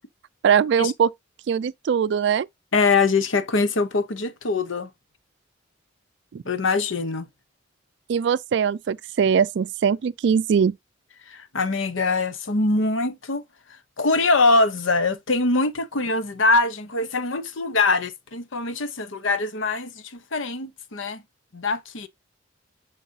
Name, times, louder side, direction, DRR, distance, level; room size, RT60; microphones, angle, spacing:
voice 1, 0.4-1.1 1.5-2.5 6.3-6.4 8.1-10.7, right 7 dB, 60° right, 0.3 m, -21 dB
voice 2, 2.7-4.9 6.5-7.3 11.3-13.4 14.0-21.2 21.5-22.1, left 3 dB, 75° left, 0.9 m, -23 dB
10.0 x 4.1 x 2.7 m
head